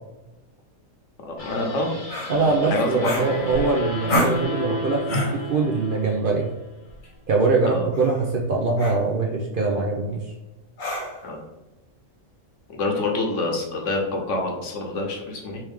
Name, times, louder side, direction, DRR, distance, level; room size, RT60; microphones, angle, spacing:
voice 1, 1.2-1.9 2.7-3.3 7.6-7.9 11.2-11.4 12.8-15.6, left 2 dB, 70° left, 0 dB, 1.2 m, -26 dB
sound 1, 1.4-6.7, left 1 dB, 40° left, 1.1 m, -34 dB
sound 2, 2.1-2.3 3.0-3.7 4.1-4.4 5.1-5.4 6.9-7.1 7.9-8.2 8.8-9.0 10.8-11.3, left 1 dB, 85° left, 1.5 m, -27 dB
voice 2, 2.3-6.5 7.3-10.2, right 3 dB, 60° right, -1 dB, 0.6 m, -22 dB
3.3 x 3.0 x 3.4 m, 1.0 s
omnidirectional pair, 1.3 m